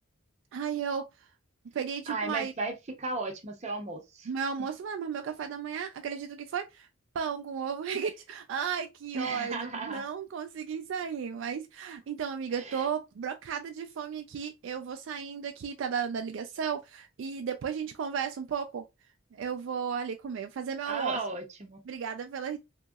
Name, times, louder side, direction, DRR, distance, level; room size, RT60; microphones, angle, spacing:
voice 1, 0.5-1.1 1.7-2.5 4.3-6.9 7.1-18.8 19.3-21.2 21.9-22.6, right 7 dB, 65° right, 0.3 m, -34 dB
voice 2, 2.1-4.3 9.1-10.0 12.5-12.9 20.9-21.8, right 3 dB, 35° right, 0.7 m, -35 dB
2.9 x 2.7 x 2.3 m
head